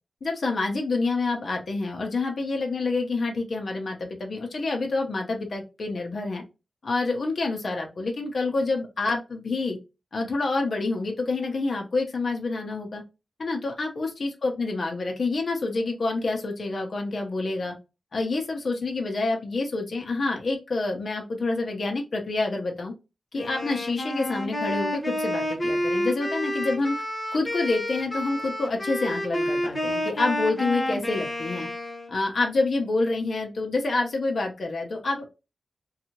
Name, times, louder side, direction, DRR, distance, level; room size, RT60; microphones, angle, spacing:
voice 1, 0.2-6.4 6.8-9.8 10.1-13.0 13.4-17.8 18.1-22.9 23.3-27.0 27.3-31.7 32.1-35.3, left 3 dB, 50° left, 2 dB, 0.7 m, -27 dB
Wind instrument woodwind instrument, 23.4-32.1, left 1 dB, 15° left, 0.9 m, -29 dB
2.7 x 2.3 x 2.8 m, 0.27 s
wide cardioid pair, 135°, 0 cm